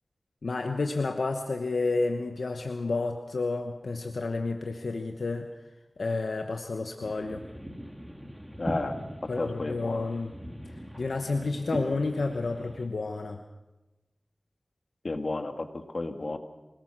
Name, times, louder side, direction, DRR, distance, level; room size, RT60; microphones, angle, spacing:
voice 1, 0.4-5.5 6.0-7.4 9.3-10.3 10.7-13.4, left 3 dB, 85° left, 5 dB, 1.1 m, -30 dB
sound 1, 7.0-12.9, equal, 10° right, 2.9 m, -41 dB
voice 2, 8.6-10.1 15.0-16.4, left 2 dB, 65° left, 6 dB, 1.9 m, -33 dB
25.5 x 19.0 x 6.1 m, 1.1 s
cardioid pair, 40°, 0 cm